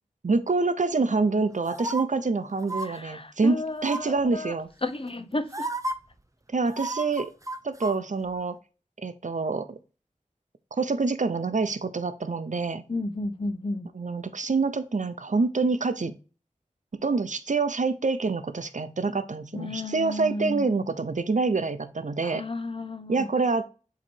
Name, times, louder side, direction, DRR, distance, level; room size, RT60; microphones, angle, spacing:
voice 1, 0.2-4.7 6.5-7.3 7.6-8.6 9.0-9.8 10.8-12.8 13.9-16.1 17.0-22.4 23.1-23.6, right 4 dB, 75° right, 0.6 m, -26 dB
sound 1, 1.7-2.0 2.6-2.9 3.8-4.2 5.1-5.2 5.5-5.9 6.7-8.0 8.3-8.4, right 1 dB, 25° right, 0.7 m, -32 dB
voice 2, 2.8-4.5 4.8-5.7 12.9-13.9 19.5-20.7 22.2-23.3, left 2 dB, 45° left, 0.8 m, -32 dB
7.2 x 3.0 x 4.4 m
wide cardioid pair, 45°, 13 cm